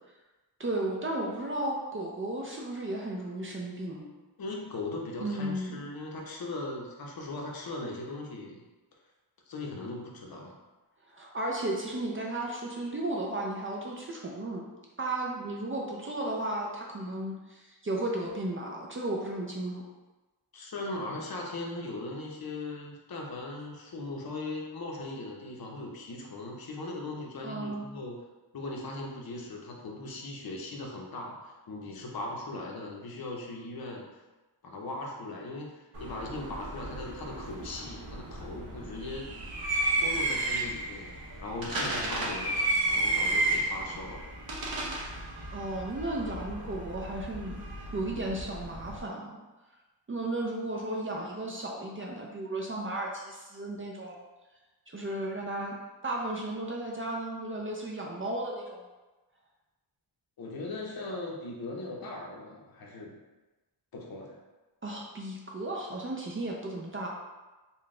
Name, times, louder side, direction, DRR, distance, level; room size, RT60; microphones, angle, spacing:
voice 1, 0.6-4.1 5.2-5.8 11.1-14.6 15.0-19.8 27.4-27.9 45.5-47.6 47.9-49.4 50.1-54.2 54.9-55.7 56.0-58.8 64.8-67.1, right 1 dB, 30° right, -2 dB, 0.4 m, -34 dB
voice 2, 4.4-8.6 9.5-10.6 20.5-28.2 28.5-34.1 34.6-39.3 40.0-41.1 41.4-42.6 42.9-44.2 60.4-63.2 63.9-64.4, left 2 dB, 55° left, 0 dB, 0.6 m, -39 dB
sound 1, 35.9-49.0, right 2 dB, 55° right, 0.8 m, -33 dB
3.8 x 2.2 x 3.6 m, 1.2 s
wide cardioid pair, 155°, 44 cm